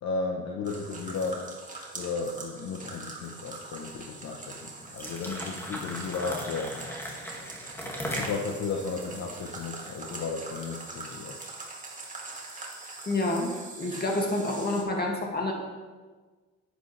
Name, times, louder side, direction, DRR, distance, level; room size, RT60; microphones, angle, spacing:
voice 1, 0.0-1.5 1.9-6.8 8.1-11.4, left 4 dB, 65° left, 1 dB, 0.9 m, -34 dB
sound 1, 0.7-14.8, right 3 dB, 25° right, 1.9 m, -43 dB
sound 2, 4.8-10.1, equal, 10° left, 1.9 m, -38 dB
voice 2, 13.1-15.5, left 2 dB, 30° left, 0 dB, 2.0 m, -28 dB
10.0 x 8.4 x 3.2 m, 1.4 s
cardioid pair, 90°, 30 cm